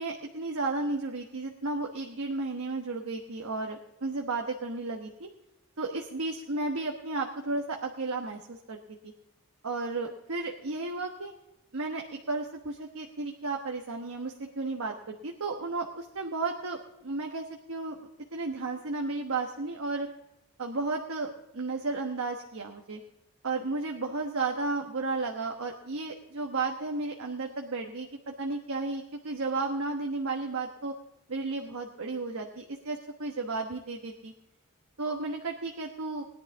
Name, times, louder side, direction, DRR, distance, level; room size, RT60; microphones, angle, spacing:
voice 1, 0.0-5.3 5.8-8.8 9.6-11.3 11.7-20.1 20.6-23.0 23.4-30.9 31.3-34.3 35.0-36.2, right 3 dB, 85° right, 1 dB, 1.2 m, -33 dB
19.5 x 10.5 x 3.6 m, 0.90 s
head